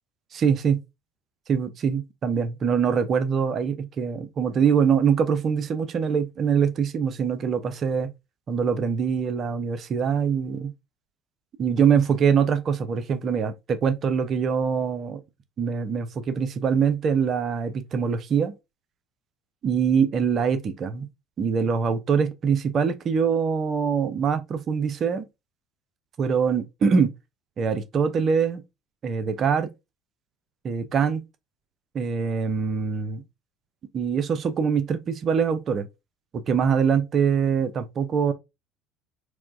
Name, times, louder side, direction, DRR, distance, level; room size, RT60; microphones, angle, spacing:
voice 1, 0.3-0.8 1.5-8.1 8.5-10.7 11.6-15.2 15.6-18.5 19.6-21.1 21.4-25.3 26.2-27.1 27.6-28.6 29.0-29.7 30.6-31.2 31.9-33.2 33.9-35.9 36.5-38.3, right 6 dB, 40° right, 0.5 m, -23 dB
4.4 x 2.1 x 2.5 m
figure-of-eight pair, 60°, 0 cm